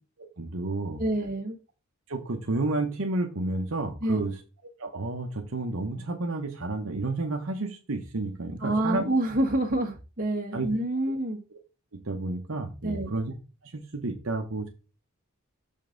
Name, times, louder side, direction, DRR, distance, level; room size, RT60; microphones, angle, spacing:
voice 1, 0.4-1.0 2.1-4.3 4.8-9.0 10.5-10.7 11.9-13.3 13.6-14.7, right 2 dB, 70° right, 1.0 m, -31 dB
voice 2, 1.0-1.6 4.0-4.3 8.6-11.4 12.8-13.1, right 1 dB, 40° right, 1.6 m, -27 dB
6.6 x 5.3 x 3.9 m
head